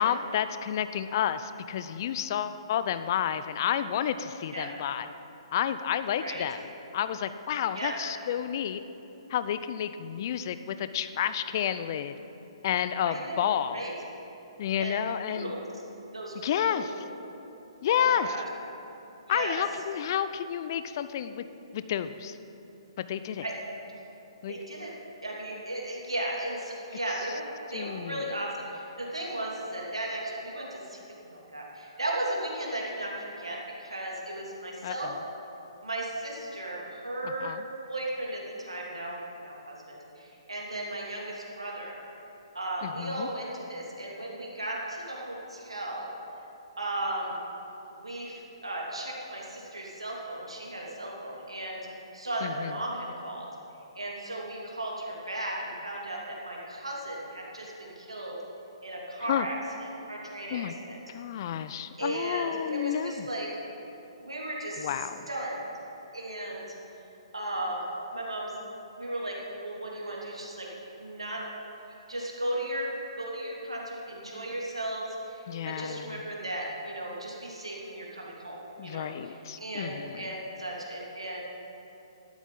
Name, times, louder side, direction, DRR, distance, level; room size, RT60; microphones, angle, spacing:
voice 1, 0.0-5.1 5.5-6.6 6.9-8.8 9.3-12.2 12.6-13.8 14.6-15.5 16.4-17.0 17.8-18.4 19.3-21.4 21.7-22.4 23.0-23.4 24.4-24.6 27.7-28.3 34.8-35.2 37.2-37.6 42.8-43.3 52.4-52.8 59.3-59.5 60.5-60.7 61.1-63.3 64.8-65.3 75.5-76.2 78.8-80.3, left 9 dB, 45° left, 12 dB, 0.5 m, -30 dB
voice 2, 13.1-13.9 14.8-15.6 16.1-17.1 17.9-18.4 19.3-19.6 23.4-23.5 24.5-24.9 25.2-31.0 31.3-35.1 35.8-37.6 37.9-42.0 42.5-46.1 46.8-47.4 47.9-51.8 52.1-53.5 53.9-58.4 58.8-61.0 61.3-61.4 62.0-63.5 64.2-65.7 66.1-66.6 67.3-67.8 68.1-68.5 69.0-70.7 71.0-71.4 72.1-81.4, right 1 dB, 80° right, -3 dB, 2.7 m, -36 dB
12.0 x 12.0 x 3.9 m, 2.9 s
figure-of-eight pair, 125°, 3 cm